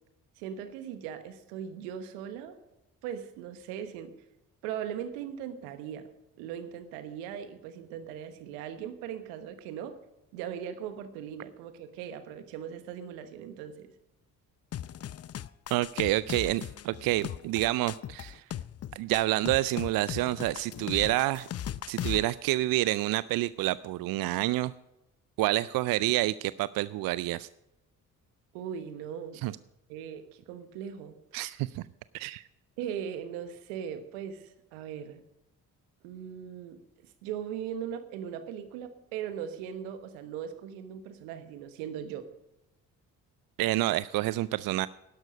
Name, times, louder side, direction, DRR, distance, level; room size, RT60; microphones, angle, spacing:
voice 1, 0.4-2.6 3.0-4.2 4.6-6.1 6.4-10.0 10.3-13.9 16.3-16.4 28.5-29.4 29.9-31.2 32.8-35.2 36.0-36.8 37.2-42.3, right 9 dB, 80° right, 10 dB, 1.3 m, -39 dB
sound 1, 14.7-22.3, left 10 dB, 35° left, 0.6 m, -38 dB
voice 2, 15.7-18.4 19.0-21.5 21.9-24.7 25.4-27.5 29.4-29.5 31.3-31.8 32.1-32.4 43.6-44.9, right 17 dB, 55° right, 18 dB, 0.5 m, -28 dB
12.0 x 11.5 x 5.2 m, 0.93 s
hypercardioid pair, 45°, 41 cm